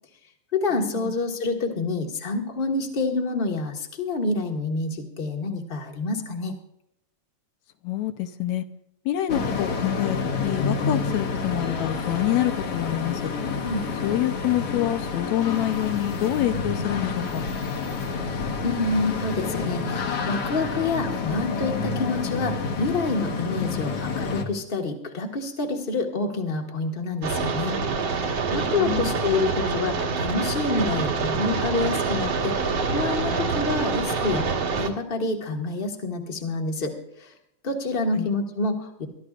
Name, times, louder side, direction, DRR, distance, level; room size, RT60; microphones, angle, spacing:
voice 1, 0.5-6.5 13.6-13.9 18.6-27.8 28.2-34.5 34.8-37.3 37.6-39.1, left 3 dB, 30° left, 2 dB, 1.1 m, -27 dB
voice 2, 7.8-8.7 9.1-13.3 14.0-17.4 23.6-23.8 28.8-29.1 38.2-38.3, left 13 dB, 70° left, 9 dB, 2.0 m, -26 dB
sound 1, 9.3-24.4, left 4 dB, 55° left, 2.1 m, -29 dB
sound 2, 27.2-34.9, right 4 dB, 60° right, 2.6 m, -26 dB
23.0 x 13.0 x 2.5 m, 0.78 s
omnidirectional pair, 3.5 m